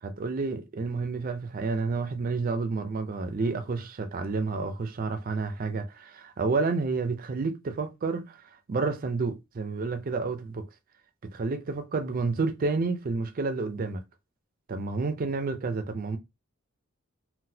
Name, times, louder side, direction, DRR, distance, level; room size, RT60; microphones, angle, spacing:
voice 1, 0.0-10.7 11.3-14.0 14.7-16.2, right 4 dB, 40° right, 0.4 m, -30 dB
3.9 x 2.2 x 2.7 m
head